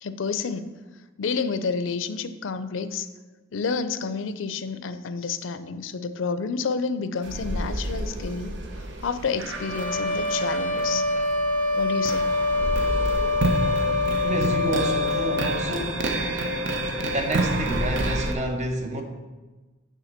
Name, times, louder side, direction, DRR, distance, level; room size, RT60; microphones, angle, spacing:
voice 1, 0.0-0.7 1.2-3.1 3.5-8.6 9.0-11.1 11.7-12.3, left 5 dB, 75° left, 0.5 m, -29 dB
sound 1, 7.2-18.3, right 1 dB, 65° right, 0.9 m, -29 dB
sound 2, 9.5-15.5, left 2 dB, 10° left, 0.6 m, -25 dB
voice 2, 14.2-16.2 17.0-19.0, right 1 dB, 40° right, 0.9 m, -29 dB
9.2 x 3.7 x 6.5 m
head